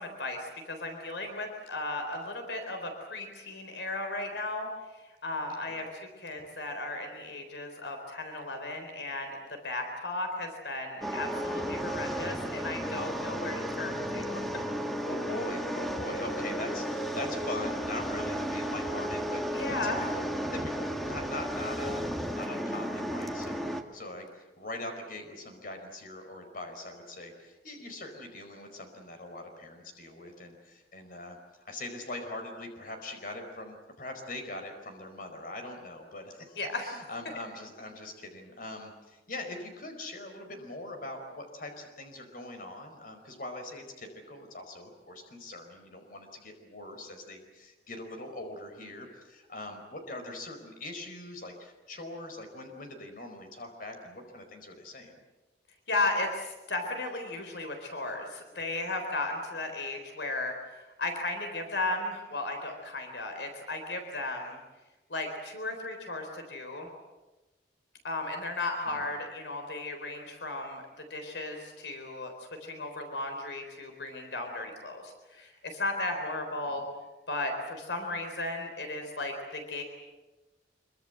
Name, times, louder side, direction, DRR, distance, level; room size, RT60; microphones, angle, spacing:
voice 1, 0.0-14.4 19.5-20.0 36.6-37.0 55.9-64.6 65.1-66.9 68.0-70.8 71.1-72.3 72.6-76.8 77.3-79.8, left 2 dB, 80° left, 5 dB, 3.9 m, -35 dB
sound 1, 11.0-23.8, equal, ahead, 1.8 m, -33 dB
voice 2, 14.2-14.5 15.0-20.3 20.5-31.4 31.6-55.2 68.9-69.1 76.7-76.8, left 2 dB, 55° left, 5 dB, 4.8 m, -42 dB
25.5 x 24.0 x 7.9 m, 1.1 s
head